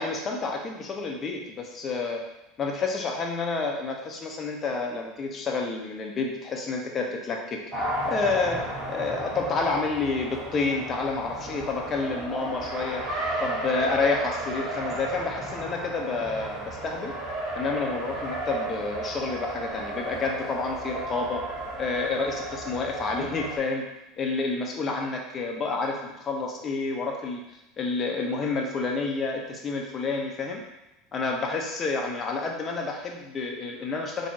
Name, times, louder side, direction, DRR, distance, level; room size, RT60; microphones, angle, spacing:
voice 1, 0.0-2.2 2.6-13.0 13.4-17.1 17.5-21.4 21.8-23.8 24.2-27.4 27.8-30.6 31.1-34.3, left 4 dB, 35° left, 1 dB, 0.9 m, -29 dB
Race car auto racing, 7.7-23.6, right 1 dB, 40° right, 1.5 m, -34 dB
4.4 x 3.1 x 2.8 m, 0.93 s
hypercardioid pair, 90°, 0 cm